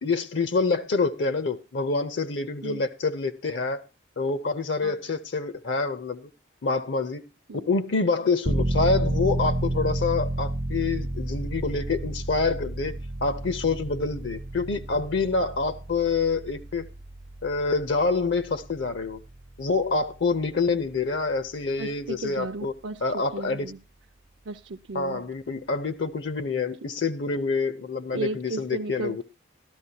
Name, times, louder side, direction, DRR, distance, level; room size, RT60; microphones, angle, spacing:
voice 1, 0.0-3.8 4.2-6.3 6.6-7.2 7.5-12.9 13.2-16.9 17.4-19.2 19.6-22.7 23.0-23.7 24.9-29.2, left 4 dB, 65° left, 0.7 m, -26 dB
sound 1, 8.4-21.0 21.3-21.4, right 1 dB, 30° right, 0.5 m, -31 dB
voice 2, 21.8-23.8 24.5-25.3 28.1-29.2, right 3 dB, 75° right, 0.6 m, -35 dB
13.0 x 12.5 x 2.8 m
head